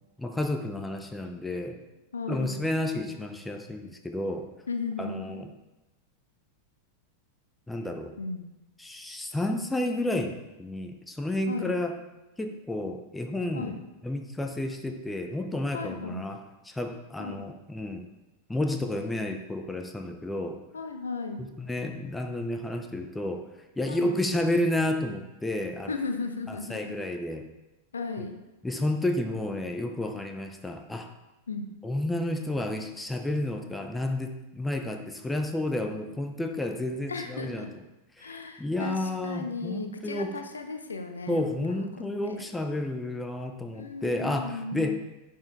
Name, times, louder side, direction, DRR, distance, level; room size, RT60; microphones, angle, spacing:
voice 1, 0.2-1.8 2.3-4.5 5.0-5.5 7.7-8.1 8.8-10.3 10.6-11.9 12.4-13.8 14.0-18.1 18.5-20.6 21.4-23.5 23.8-25.9 26.5-27.4 28.2-28.3 28.6-31.1 31.8-37.7 38.2-40.3 41.3-44.9, left 1 dB, 5° left, 5 dB, 0.7 m, -31 dB
voice 2, 2.1-2.5 4.7-5.4 8.2-8.5 11.5-11.7 13.5-13.8 15.7-16.2 17.2-17.4 20.7-21.4 23.9-24.2 25.9-26.9 27.9-28.4 31.5-31.7 37.1-37.7 38.2-42.4 43.7-44.9, left 4 dB, 70° left, 6 dB, 0.7 m, -35 dB
10.5 x 4.7 x 3.5 m, 1.0 s
figure-of-eight pair, 90°, 0 cm